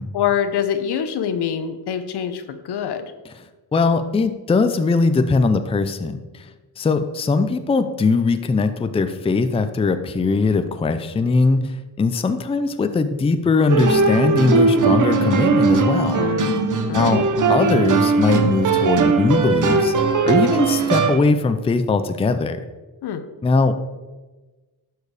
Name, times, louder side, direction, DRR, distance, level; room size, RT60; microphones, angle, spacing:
voice 1, 0.1-3.1 16.2-17.3 23.0-23.2, left 8 dB, 80° left, 9 dB, 0.9 m, -25 dB
voice 2, 3.7-6.2 6.8-16.3 16.9-17.2 17.5-19.9 20.2-22.6 23.4-23.7, left 4 dB, 15° left, 10 dB, 0.4 m, -20 dB
sound 1, 13.7-21.2, right 4 dB, 50° right, 1.0 m, -19 dB
11.5 x 4.7 x 4.8 m, 1.2 s
wide cardioid pair, 140°, 39 cm